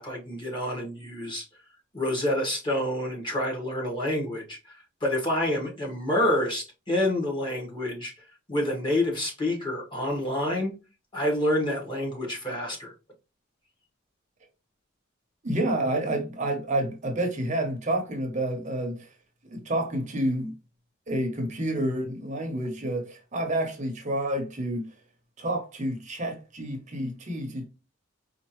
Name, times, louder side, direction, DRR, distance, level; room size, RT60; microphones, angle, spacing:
voice 1, 0.0-1.4 1.9-4.6 5.0-8.1 8.5-10.7 11.1-12.9, left 1 dB, 25° left, 1.5 m, -28 dB
voice 2, 15.4-19.1 19.5-20.5 21.1-24.9 25.4-27.7, right 1 dB, 35° right, 0.8 m, -29 dB
4.5 x 2.5 x 3.0 m
head